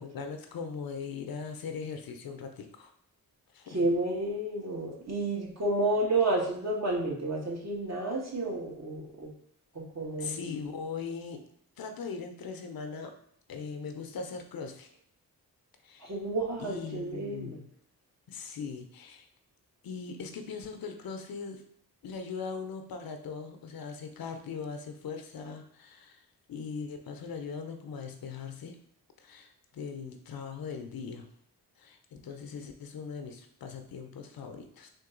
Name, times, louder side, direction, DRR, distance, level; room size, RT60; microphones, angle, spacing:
voice 1, 0.0-2.9 3.5-3.8 10.2-11.5 11.8-13.2 13.5-14.9 15.8-16.1 16.6-17.7 18.3-19.3 19.8-21.6 22.0-28.8 29.2-31.3 31.8-34.9, left 5 dB, 65° left, 6 dB, 0.6 m, -40 dB
voice 2, 3.7-9.3 9.7-10.4 16.0-17.6, right 2 dB, 45° right, -2 dB, 1.4 m, -31 dB
3.6 x 2.6 x 3.8 m, 0.65 s
cardioid pair, 60°, 38 cm